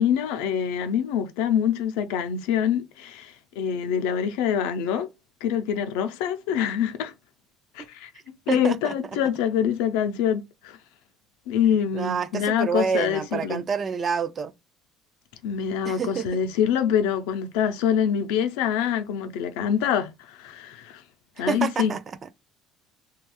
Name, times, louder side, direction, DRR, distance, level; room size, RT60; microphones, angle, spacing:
voice 1, 0.0-5.1 5.4-7.1 7.8-8.1 8.5-10.8 11.5-13.6 15.4-21.0 21.4-21.9, left 8 dB, 90° left, 0.5 m, -25 dB
voice 2, 8.5-9.0 11.9-14.5 15.8-16.3 21.5-22.3, right 6 dB, 30° right, 0.3 m, -28 dB
2.9 x 2.3 x 3.0 m
cardioid pair, 125°, 0 cm